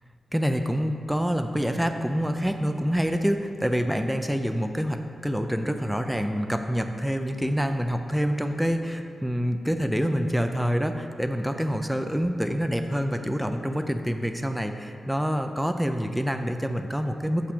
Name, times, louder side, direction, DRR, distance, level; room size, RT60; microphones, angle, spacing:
voice 1, 0.3-17.5, equal, ahead, 5 dB, 0.4 m, -26 dB
6.1 x 5.8 x 6.7 m, 2.5 s
wide cardioid pair, 145°, 0 cm